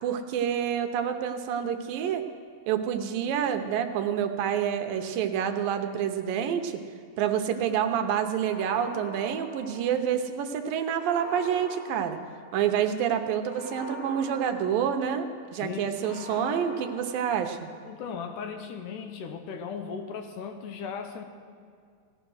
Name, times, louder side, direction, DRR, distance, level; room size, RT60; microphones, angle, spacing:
voice 1, 0.0-2.2 2.7-6.8 7.2-12.2 12.5-15.3 15.5-17.7, right 8 dB, 80° right, 6 dB, 2.5 m, -28 dB
sound 1, 8.4-10.3 10.9-12.7 13.4-15.3 16.0-17.8, left 2 dB, 25° left, 4.2 m, -44 dB
voice 2, 15.5-16.4 17.8-21.2, left 6 dB, 75° left, 6 dB, 2.2 m, -37 dB
17.5 x 12.0 x 6.3 m, 2.2 s
omnidirectional pair, 4.1 m